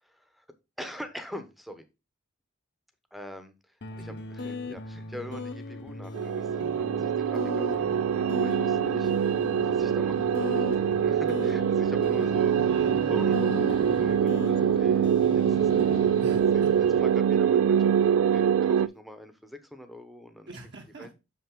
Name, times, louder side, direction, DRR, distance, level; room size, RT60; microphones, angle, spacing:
voice 1, 0.0-0.4 0.8-1.8 3.1-12.7 13.1-15.7 16.0-16.1 16.5-20.5 21.0-21.1, equal, ahead, 8 dB, 0.9 m, -44 dB
sound 1, 3.8-18.9, left 2 dB, 60° left, 0.8 m, -39 dB
sound 2, 6.1-18.9, right 8 dB, 85° right, 0.3 m, -24 dB
sound 3, 7.8-17.2, left 2 dB, 25° left, 0.5 m, -44 dB
voice 2, 12.7-13.1 16.1-16.7 20.5-21.1, right 1 dB, 60° right, 2 dB, 1.4 m, -44 dB
6.5 x 5.7 x 3.7 m, 0.27 s
head